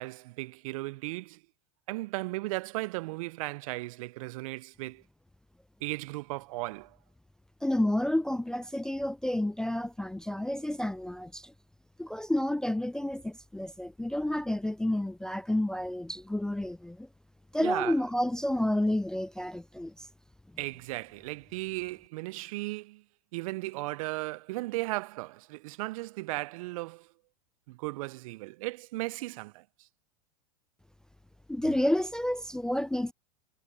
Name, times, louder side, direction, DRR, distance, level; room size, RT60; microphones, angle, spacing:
voice 1, 0.0-1.4 1.9-5.0 5.8-7.0 17.6-17.9 20.6-23.0 23.3-27.1 27.7-29.6, right 21 dB, 60° right, 0.6 m, -36 dB
voice 2, 7.6-11.5 12.0-17.1 17.5-19.9 31.5-33.1, left 1 dB, 5° left, 0.3 m, -30 dB
hypercardioid pair, 100°, 20 cm